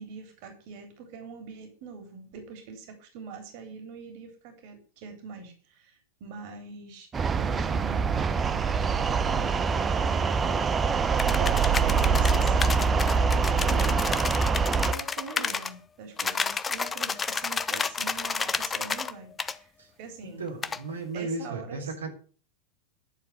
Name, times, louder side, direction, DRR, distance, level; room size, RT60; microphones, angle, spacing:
voice 1, 0.0-7.1 7.4-13.0 13.3-14.1 14.9-19.7 20.0-20.4 21.1-21.9, right 5 dB, 45° right, 5 dB, 3.5 m, -43 dB
sound 1, 7.1-14.9, right 5 dB, 20° right, 0.8 m, -24 dB
sound 2, 11.2-15.7 16.2-19.1 19.4-19.6 20.6-20.8, left 5 dB, 15° left, 0.8 m, -31 dB
voice 2, 20.2-22.1, right 3 dB, 70° right, 0 dB, 3.4 m, -35 dB
11.5 x 7.5 x 8.0 m, 0.41 s
figure-of-eight pair, 90°, 0 cm